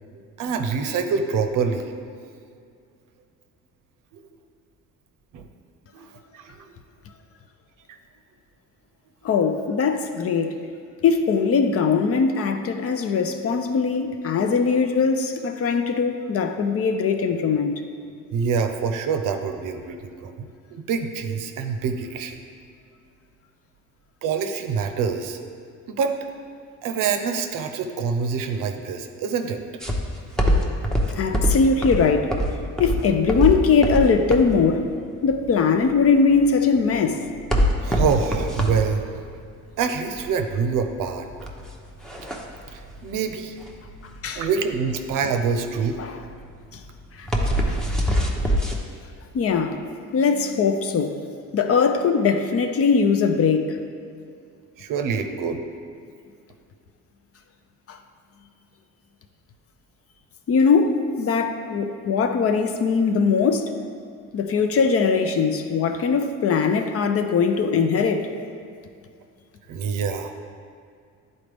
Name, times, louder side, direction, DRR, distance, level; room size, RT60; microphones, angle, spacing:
voice 1, 0.4-1.9 4.1-4.2 5.3-5.5 5.9-6.6 7.9-8.0 18.3-20.3 20.7-22.4 24.2-25.4 25.9-26.2 26.8-29.6 37.8-39.1 39.8-41.3 42.7-43.5 44.3-46.0 54.8-55.6 69.7-70.3, right 6 dB, 70° right, 6 dB, 0.7 m, -26 dB
voice 2, 9.2-10.5 11.0-17.8 31.2-32.3 32.8-34.8 35.2-37.2 44.2-44.4 46.0-46.1 47.2-47.3 47.7-47.8 49.3-49.8 50.1-51.2 51.5-53.8 57.9-58.0 60.5-63.7 64.3-68.3, left 5 dB, 45° left, 6 dB, 0.5 m, -21 dB
sound 1, 29.8-48.8, equal, ahead, 0.7 m, -25 dB
10.0 x 4.1 x 3.4 m, 2.3 s
cardioid pair, 110°, 34 cm